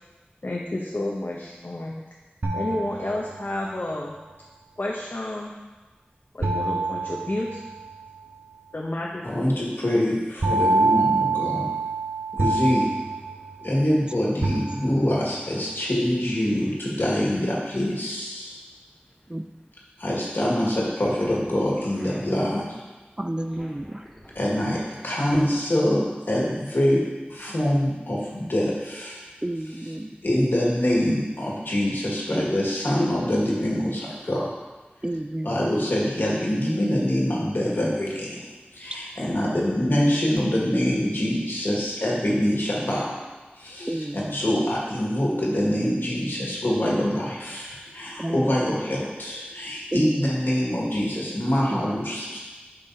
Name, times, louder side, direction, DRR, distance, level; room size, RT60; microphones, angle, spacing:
voice 1, 0.4-2.0 2.5-4.1 4.8-5.5 6.3-7.6 8.7-9.7, left 1 dB, 60° left, -3 dB, 0.7 m, -30 dB
sound 1, 2.4-3.6 6.4-8.0 10.4-14.0 14.4-15.3, right 3 dB, 75° right, 0.6 m, -26 dB
voice 2, 9.2-11.7 12.3-12.9 13.6-18.5 20.0-22.8 24.3-29.2 30.2-34.5 35.4-38.5 38.7-43.2 43.5-52.4, left 1 dB, 75° left, -5 dB, 1.7 m, -25 dB
sound 2, 20.9-22.4 23.3-25.1, equal, 5° right, 2.1 m, -46 dB
voice 3, 23.2-24.0 29.4-30.2 32.3-32.4 35.0-35.7 43.9-44.4 48.2-48.8 49.9-50.3 51.7-51.9, right 1 dB, 25° right, 7 dB, 0.4 m, -31 dB
8.4 x 5.6 x 2.7 m, 1.2 s
wide cardioid pair, 40°, 4 cm